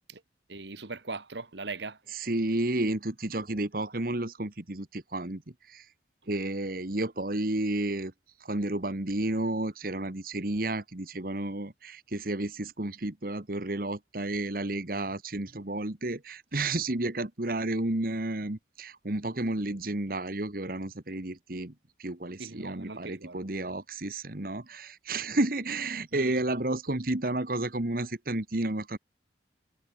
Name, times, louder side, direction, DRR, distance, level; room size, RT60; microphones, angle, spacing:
voice 1, 0.5-2.0 22.4-23.3 26.1-26.3, right 3 dB, 75° right, 1.7 m, -40 dB
voice 2, 2.1-5.4 5.7-5.8 6.3-8.1 8.4-21.7 22.0-29.0, right 2 dB, 50° right, 1.6 m, -31 dB
head